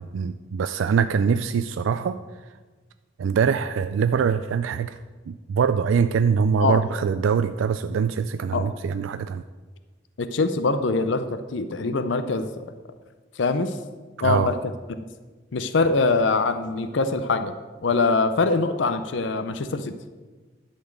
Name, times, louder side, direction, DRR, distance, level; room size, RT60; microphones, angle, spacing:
voice 1, 0.0-2.2 3.2-5.0 5.3-9.4 14.2-14.5, right 6 dB, 85° right, 11 dB, 0.3 m, -23 dB
voice 2, 10.2-12.6 13.4-13.8 14.2-14.6 15.5-17.5 17.8-20.0, left 3 dB, 75° left, 10 dB, 0.5 m, -23 dB
11.5 x 4.2 x 8.0 m, 1.3 s
head